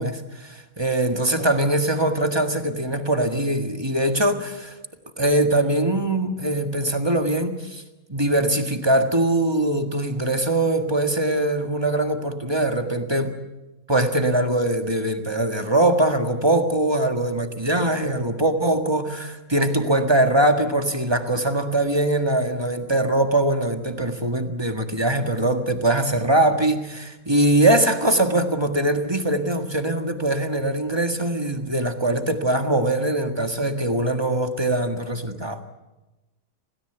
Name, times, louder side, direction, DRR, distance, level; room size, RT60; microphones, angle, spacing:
voice 1, 0.0-4.8 5.2-7.8 8.1-13.3 13.9-35.6, right 1 dB, 20° right, 6 dB, 1.7 m, -22 dB
27.5 x 17.5 x 8.0 m, 1.1 s
omnidirectional pair, 1.5 m